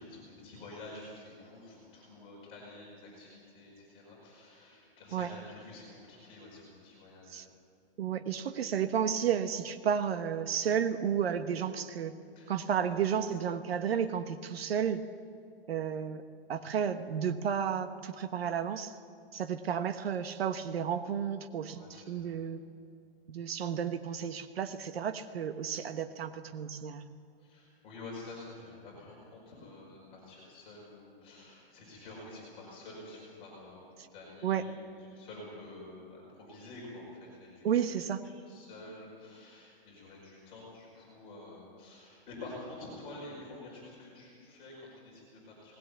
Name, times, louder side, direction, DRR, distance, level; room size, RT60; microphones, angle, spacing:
voice 1, 0.0-7.4 12.3-13.1 21.7-22.4 27.4-34.8 35.1-37.8 38.2-45.8, left 2 dB, 20° left, -4 dB, 5.1 m, -49 dB
voice 2, 8.0-12.1 12.5-15.0 15.7-16.2 16.5-18.9 19.3-22.6 23.3-27.0 34.0-34.1 34.4-34.7 37.6-38.3, right 8 dB, 80° right, 9 dB, 1.2 m, -32 dB
19.5 x 17.0 x 8.4 m, 2.4 s
hypercardioid pair, 180°, 30 cm